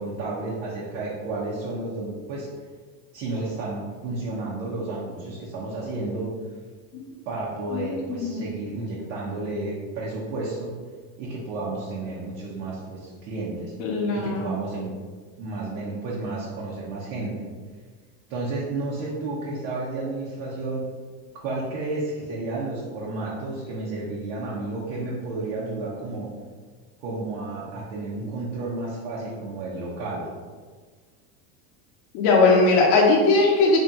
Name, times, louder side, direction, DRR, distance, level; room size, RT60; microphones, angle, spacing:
voice 1, 0.0-2.5 3.1-6.3 7.3-10.7 11.2-13.7 14.1-14.9 15.4-17.5 18.3-20.8 21.3-26.3 27.0-30.3, right 2 dB, 65° right, -6 dB, 1.1 m, -31 dB
voice 2, 7.7-8.4 13.8-14.5 32.1-33.8, left 3 dB, 55° left, -2 dB, 1.0 m, -19 dB
3.5 x 2.8 x 3.7 m, 1.5 s
supercardioid pair, 105°, 50 cm